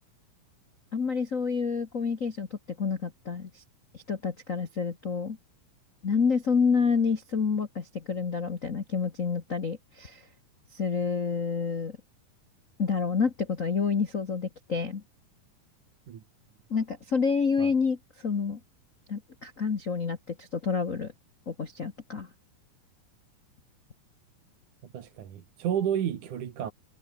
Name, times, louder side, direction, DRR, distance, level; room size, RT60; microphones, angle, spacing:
voice 1, 0.9-3.6 3.9-5.4 6.0-10.2 10.7-11.9 12.8-15.0 16.7-18.6 19.1-21.1 21.5-22.3, left 5 dB, 65° left, 0.7 m, -28 dB
voice 2, 24.9-26.7, right 9 dB, 65° right, 3.3 m, -31 dB
omnidirectional pair, 4.0 m